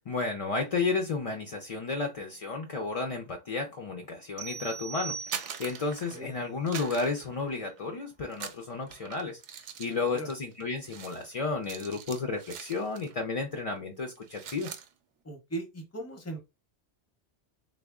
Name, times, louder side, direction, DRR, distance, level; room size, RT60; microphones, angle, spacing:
voice 1, 0.1-9.4 9.8-14.7, left 4 dB, 55° left, 0.3 m, -32 dB
sound 1, 4.4-5.9, right 6 dB, 60° right, 0.6 m, -40 dB
sound 2, 5.1-6.3 6.7-7.9 8.3-13.2 13.5-13.8 14.1-14.9, right 8 dB, 90° right, 0.9 m, -43 dB
voice 2, 9.8-10.3 15.2-16.4, right 2 dB, 15° left, 0.6 m, -39 dB
3.4 x 2.1 x 3.5 m
omnidirectional pair, 1.2 m